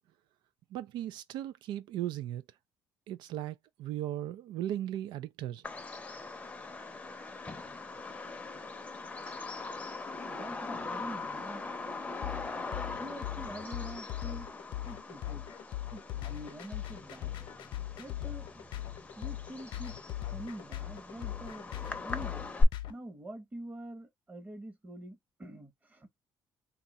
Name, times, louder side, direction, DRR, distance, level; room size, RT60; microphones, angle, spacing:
voice 1, 0.7-2.4 3.1-5.6, right 12 dB, 90° right, 0.4 m, -37 dB
Bird vocalization bird call bird song, 5.6-22.6, left 3 dB, 15° left, 0.7 m, -39 dB
voice 2, 10.3-11.7 13.0-14.5 14.9-15.4 15.9-17.4 18.0-18.6 19.2-20.0 20.3-21.7 22.0-22.5 22.8-26.1, right 1 dB, 20° right, 1.1 m, -45 dB
sound 1, 12.2-22.9, left 14 dB, 85° left, 0.7 m, -40 dB
2.8 x 2.3 x 4.1 m
cardioid pair, 130°, 8 cm